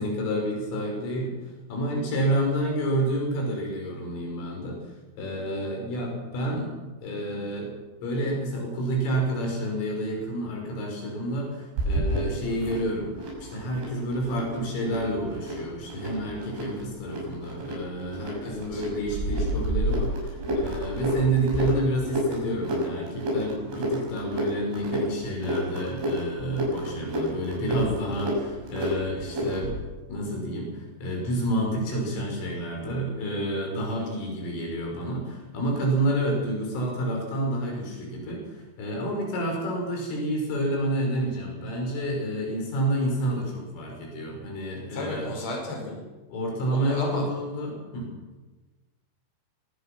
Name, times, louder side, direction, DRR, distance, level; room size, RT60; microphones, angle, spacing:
voice 1, 0.0-1.4 1.7-4.8 5.2-7.7 8.0-13.1 13.4-29.7 30.1-45.3 46.3-48.1, right 1 dB, 85° left, 0 dB, 8.0 m, -29 dB
sound 1, 11.8-29.8, equal, 75° right, 9.0 m, -31 dB
voice 2, 18.4-18.8 44.9-46.0 46.7-47.3, left 2 dB, 35° left, 0 dB, 6.6 m, -33 dB
23.5 x 19.0 x 6.1 m, 1.2 s
omnidirectional pair, 5.6 m